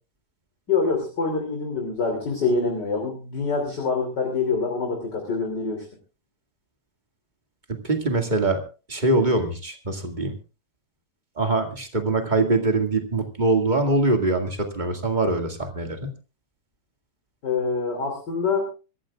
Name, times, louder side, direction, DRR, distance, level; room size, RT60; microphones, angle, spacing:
voice 1, 0.7-5.9 17.4-18.7, left 4 dB, 30° left, 2 dB, 3.2 m, -25 dB
voice 2, 7.7-8.6 8.9-10.4 11.4-16.1, right 2 dB, 20° right, 4 dB, 1.4 m, -23 dB
25.5 x 14.0 x 2.4 m, 0.33 s
omnidirectional pair, 3.8 m